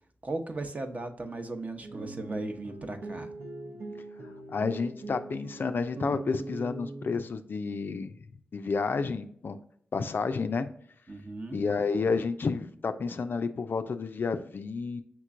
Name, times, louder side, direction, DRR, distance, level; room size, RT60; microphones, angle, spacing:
voice 1, 0.2-3.3 11.1-11.6, right 2 dB, 35° right, 6 dB, 0.8 m, -37 dB
sound 1, 1.8-7.3, right 2 dB, 70° right, 0.8 m, -41 dB
voice 2, 4.5-8.1 8.5-9.6 9.9-10.7 11.5-15.0, left 4 dB, 50° left, 9 dB, 0.3 m, -30 dB
5.7 x 3.0 x 2.4 m, 0.65 s
cardioid pair, 55°, 4 cm